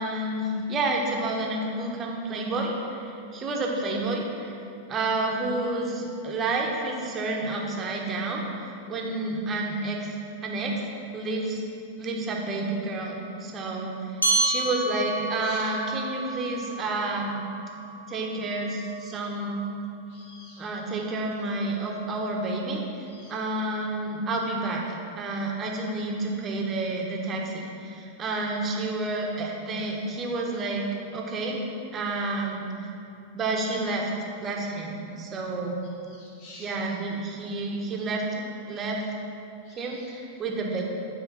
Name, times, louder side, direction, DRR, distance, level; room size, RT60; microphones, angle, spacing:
voice 1, 0.0-4.6 4.9-10.1 10.4-10.8 11.1-11.6 12.0-14.1 14.4-17.4 18.1-19.7 20.6-30.8 31.1-31.6 31.9-32.7 33.3-34.1 34.4-35.8 36.6-39.0 39.8-40.8, right 2 dB, 25° right, 0 dB, 1.5 m, -30 dB
sound 1, 14.2-19.0, right 2 dB, 85° left, 1.4 m, -30 dB
voice 2, 20.1-20.7 23.1-23.3 36.1-36.8 39.6-40.1, left 2 dB, 50° left, -3 dB, 2.4 m, -49 dB
10.5 x 5.0 x 6.0 m, 2.6 s
figure-of-eight pair, 90°, 0 cm